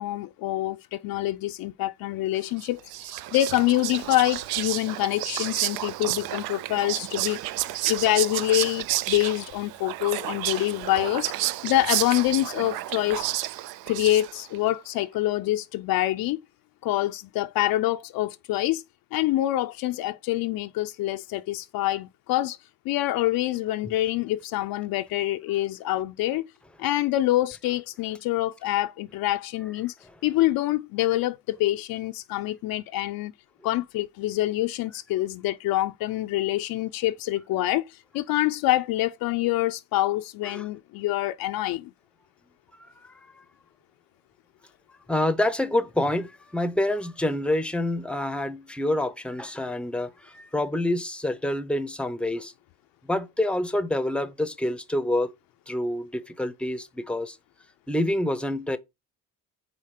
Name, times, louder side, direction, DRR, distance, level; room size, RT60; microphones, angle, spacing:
voice 1, 0.0-7.4 7.9-13.2 13.9-16.4 16.8-18.8 19.1-22.6 22.9-26.5 26.8-29.9 30.2-33.3 33.6-41.9, left 15 dB, 75° left, 0.5 m, -26 dB
Whispering, 2.6-14.6, right 15 dB, 80° right, 0.5 m, -31 dB
voice 2, 45.1-52.5 53.1-55.3 55.7-57.4 57.9-58.8, left 1 dB, 5° left, 0.6 m, -27 dB
5.0 x 4.0 x 5.6 m
cardioid pair, 100°, 36 cm